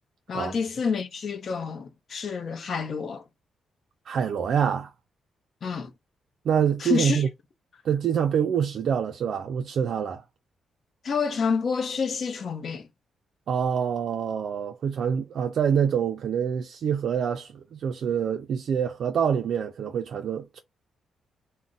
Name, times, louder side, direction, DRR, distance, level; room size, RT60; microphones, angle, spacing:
voice 1, 0.3-3.2 5.6-5.9 6.8-7.2 11.0-12.9, left 5 dB, 50° left, 0.6 m, -28 dB
voice 2, 4.1-4.9 6.5-7.3 7.8-10.2 13.5-20.6, right 8 dB, 65° right, 0.3 m, -26 dB
2.4 x 2.1 x 3.8 m
cardioid pair, 100°, 0 cm